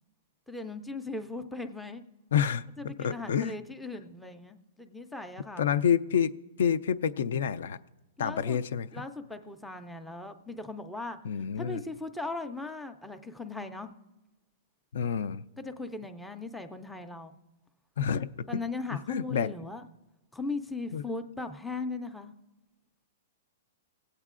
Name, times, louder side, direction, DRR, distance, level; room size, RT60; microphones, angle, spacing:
voice 1, 0.5-2.1 2.8-5.7 8.2-8.6 8.9-11.2 11.6-13.9 15.6-17.4 18.5-19.9 20.3-22.3, left 3 dB, ahead, 0.4 m, -38 dB
voice 2, 2.3-3.6 5.6-6.3 6.6-7.8 8.2-8.9 11.2-11.8 14.9-15.5 18.0-18.6 19.1-19.5 20.9-21.0, left 8 dB, 70° left, 0.4 m, -28 dB
20.5 x 8.1 x 2.4 m
hypercardioid pair, 170°, 0 cm